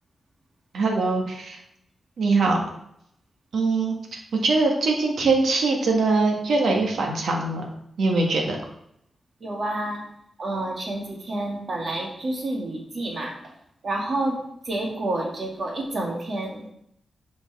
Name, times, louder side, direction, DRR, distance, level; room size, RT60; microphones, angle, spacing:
voice 1, 0.7-1.6 2.2-2.6 3.5-7.6 8.0-8.6, right 3 dB, 85° right, 1 dB, 1.5 m, -22 dB
voice 2, 9.4-10.0 10.4-13.4 13.8-14.4 14.7-16.6, right 2 dB, 50° right, 0 dB, 2.1 m, -29 dB
8.4 x 5.2 x 4.7 m, 0.73 s
wide cardioid pair, 140°, 0 cm